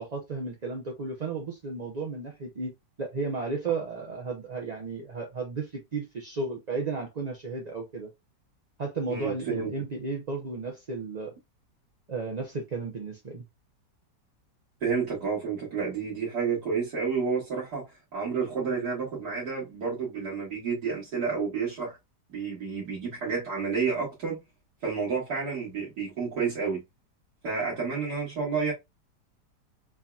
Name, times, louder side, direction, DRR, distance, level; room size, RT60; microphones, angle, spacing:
voice 1, 0.0-2.7 3.0-8.1 8.8-11.3 12.1-13.4, right 4 dB, 40° right, 0.6 m, -33 dB
voice 2, 9.1-9.7 14.8-17.9 18.1-22.0 22.3-24.4 24.8-26.8 27.4-28.7, right 5 dB, 70° right, 2.2 m, -30 dB
4.6 x 2.8 x 2.3 m
omnidirectional pair, 1.9 m